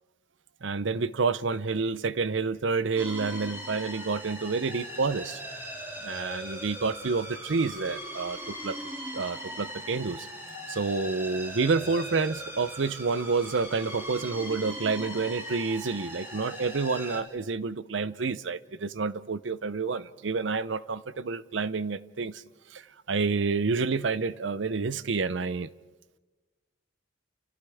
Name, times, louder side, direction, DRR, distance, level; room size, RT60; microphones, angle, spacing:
voice 1, 0.6-5.4 6.0-8.8 9.1-10.3 10.7-22.4 22.7-25.7, right 4 dB, 75° right, 0.6 m, -29 dB
sound 1, 3.0-17.2, equal, 15° right, 2.7 m, -40 dB
30.0 x 28.5 x 3.5 m
head